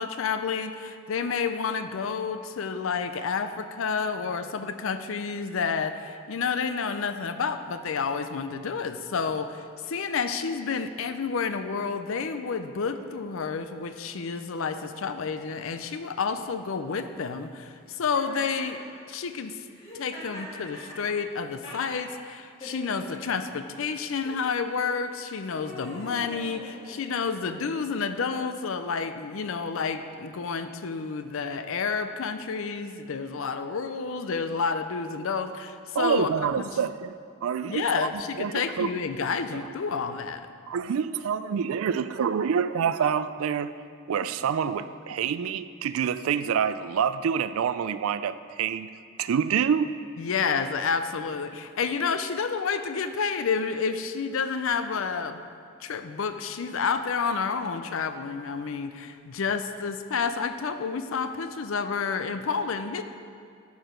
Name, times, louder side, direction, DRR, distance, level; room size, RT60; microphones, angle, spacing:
voice 1, 0.0-18.8 19.1-19.5 19.9-36.3 36.6-36.7 37.7-40.5 50.2-55.4 55.8-63.0, left 5 dB, 65° left, 10 dB, 0.5 m, -30 dB
Laughter, 18.1-18.9 19.7-22.1 22.6-23.4 24.1-24.4 25.1-27.3, left 1 dB, 25° left, 1.9 m, -43 dB
voice 2, 35.9-37.1 37.4-38.1 38.4-38.9 40.7-43.7 44.1-48.9 49.2-49.9, right 7 dB, 75° right, 13 dB, 0.3 m, -27 dB
12.0 x 4.7 x 5.1 m, 2.3 s
head